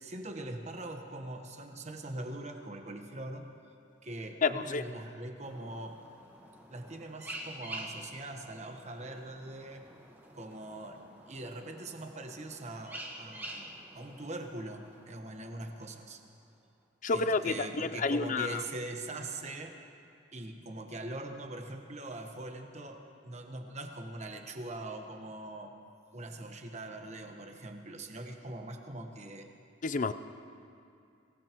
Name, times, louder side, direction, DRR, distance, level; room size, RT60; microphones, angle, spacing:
voice 1, 0.0-3.5 4.0-6.0 6.7-9.9 10.3-13.7 13.9-16.2 17.1-19.8 20.3-25.7 26.1-29.5, right 2 dB, 40° right, 4 dB, 1.2 m, -42 dB
voice 2, 4.4-4.8 17.0-18.6 29.8-30.1, left 4 dB, 45° left, 12 dB, 0.5 m, -30 dB
sound 1, 5.4-16.4, right 1 dB, 10° right, 1.3 m, -48 dB
23.5 x 18.0 x 3.0 m, 2.5 s
head